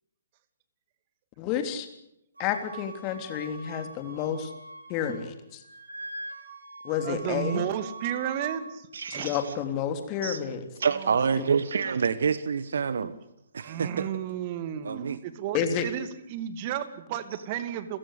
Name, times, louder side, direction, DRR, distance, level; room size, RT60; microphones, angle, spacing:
voice 1, 1.4-1.9 2.4-4.5 4.9-5.3 6.8-7.6 9.1-10.7 11.3-11.4 15.5-15.9, left 8 dB, 30° left, 7 dB, 3.5 m, -30 dB
Wind instrument woodwind instrument, 2.4-5.3 5.5-8.6, right 3 dB, 85° right, 5.2 m, -42 dB
voice 2, 7.0-8.9 9.1-9.3 10.9-11.2 13.6-18.0, right 10 dB, 35° right, 12 dB, 2.4 m, -33 dB
voice 3, 8.9-9.4 10.2-10.4 10.8-13.1 13.5-14.1 14.8-15.2, right 6 dB, 65° right, 16 dB, 1.3 m, -27 dB
29.5 x 16.5 x 8.4 m, 0.82 s
figure-of-eight pair, 130°, 0 cm